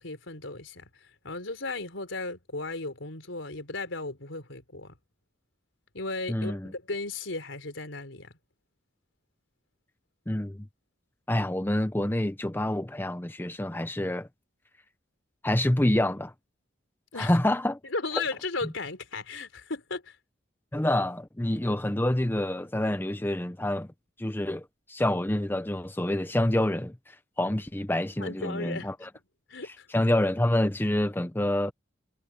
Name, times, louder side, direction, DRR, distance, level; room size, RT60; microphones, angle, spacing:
voice 1, 0.0-5.0 5.9-8.3 17.1-17.4 17.9-20.2 28.2-28.9 29.5-29.9, left 3 dB, 85° left, 3.9 m, -35 dB
voice 2, 6.3-6.7 10.3-10.7 11.3-14.3 15.4-16.3 17.2-17.8 20.7-23.9 24.2-29.1 29.9-31.7, left 1 dB, 10° left, 0.7 m, -27 dB
head